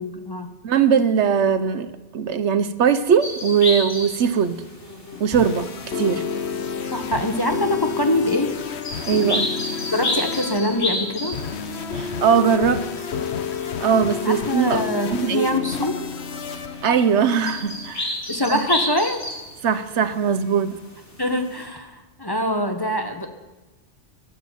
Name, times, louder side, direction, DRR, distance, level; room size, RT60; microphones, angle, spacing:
voice 1, 0.0-0.5 6.9-8.5 9.9-11.4 14.2-16.1 18.3-19.2 21.2-23.3, left 1 dB, 20° left, 5 dB, 1.0 m, -24 dB
voice 2, 0.6-1.9 2.1-4.6 5.2-6.2 9.1-9.5 11.9-12.8 13.8-14.8 15.1-15.5 16.8-18.1 18.5-18.6 19.6-20.8, right 7 dB, 75° right, 12 dB, 1.1 m, -20 dB
sound 1, 3.2-21.7, left 1 dB, 85° left, 3.2 m, -33 dB
sound 2, 5.1-17.9, left 6 dB, 65° left, 1.2 m, -30 dB
14.5 x 11.0 x 7.2 m, 1.2 s
omnidirectional pair, 1.2 m